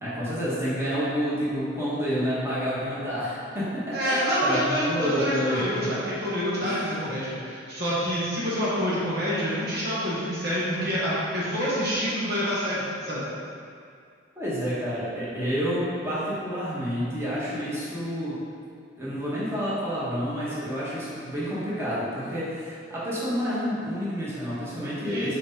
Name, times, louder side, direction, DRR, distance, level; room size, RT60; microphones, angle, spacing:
voice 1, 0.0-5.9 6.6-7.1 14.3-18.4 19.0-25.3, equal, 15° right, -10 dB, 1.5 m, -29 dB
voice 2, 3.9-13.2 25.1-25.3, equal, 60° right, -8 dB, 1.6 m, -27 dB
5.0 x 4.2 x 5.3 m, 2.3 s
head